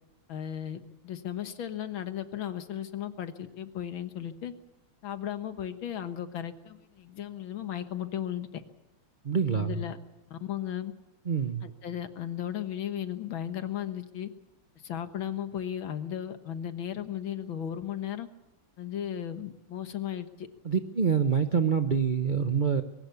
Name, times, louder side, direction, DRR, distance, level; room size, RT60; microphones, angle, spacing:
voice 1, 0.3-4.5 5.0-8.6 9.5-10.0 10.3-10.9 11.6-14.3 14.8-18.3 18.8-20.5, left 10 dB, 65° left, 9 dB, 2.0 m, -35 dB
voice 2, 9.2-9.8 11.3-11.6 20.6-22.8, right 6 dB, 70° right, 9 dB, 0.4 m, -26 dB
22.0 x 18.0 x 8.3 m, 0.93 s
omnidirectional pair, 2.4 m